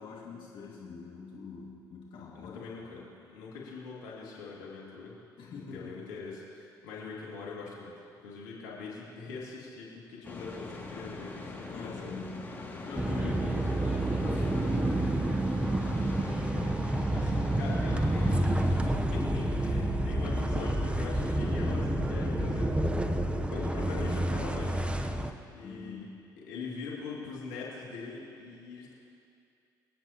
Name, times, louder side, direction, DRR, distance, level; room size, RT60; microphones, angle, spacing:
voice 1, 0.0-3.1 5.4-6.0 11.7-16.0 16.5-17.1 25.6-26.2, left 5 dB, 60° left, -4 dB, 2.3 m, -45 dB
voice 2, 2.3-3.0 3.3-5.1 5.5-7.9 8.2-12.1 17.1-22.8 23.3-24.9 25.5-26.1 26.4-28.9, left 4 dB, 85° left, -5 dB, 2.6 m, -42 dB
sound 1, 10.2-18.8, left 3 dB, 20° left, 2.6 m, -42 dB
sound 2, 12.9-25.3, right 1 dB, 10° right, 1.0 m, -29 dB
26.0 x 9.1 x 3.0 m, 2.5 s
hypercardioid pair, 55°, 9 cm